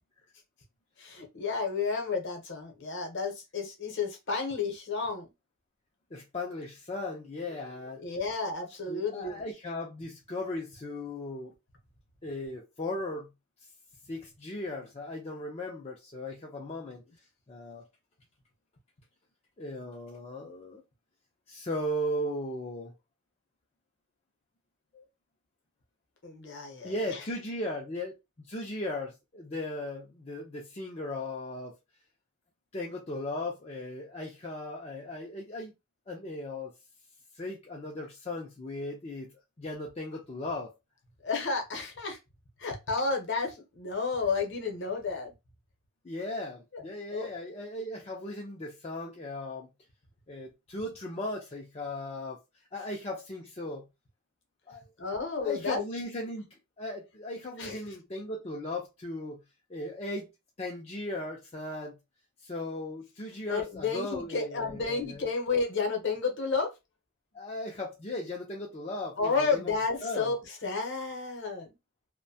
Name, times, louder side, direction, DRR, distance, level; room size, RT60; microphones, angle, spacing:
voice 1, 1.0-5.3 7.6-7.7 8.0-9.4 26.2-27.2 41.2-42.2 42.6-45.3 46.7-46.8 47.1-47.3 55.0-55.8 57.6-57.8 63.5-66.7 69.2-71.7, left 4 dB, 50° left, 0.8 m, -31 dB
voice 2, 6.1-8.0 8.9-11.5 12.2-13.3 14.1-17.0 17.5-17.8 19.6-20.8 21.5-22.9 24.9-25.0 26.8-31.7 32.7-35.7 36.1-36.7 37.3-39.3 39.6-40.7 46.0-49.7 50.3-52.4 52.7-53.9 54.7-54.8 55.3-56.5 56.8-59.4 59.7-60.3 60.6-62.0 62.4-65.3 67.3-69.7 70.0-70.3, left 1 dB, 25° left, 0.4 m, -37 dB
2.6 x 2.1 x 2.7 m
head